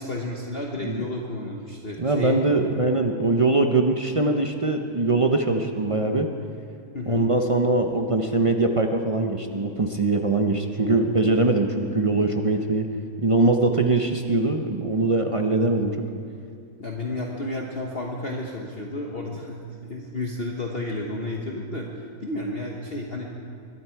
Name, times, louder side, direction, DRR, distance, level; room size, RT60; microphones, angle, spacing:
voice 1, 0.0-2.7 6.9-7.3 16.8-23.3, left 2 dB, 40° left, -1 dB, 1.3 m, -32 dB
voice 2, 2.0-6.3 7.1-12.9 13.2-16.0, right 2 dB, 45° right, 4 dB, 0.4 m, -22 dB
22.0 x 12.5 x 4.6 m, 2.3 s
omnidirectional pair, 1.7 m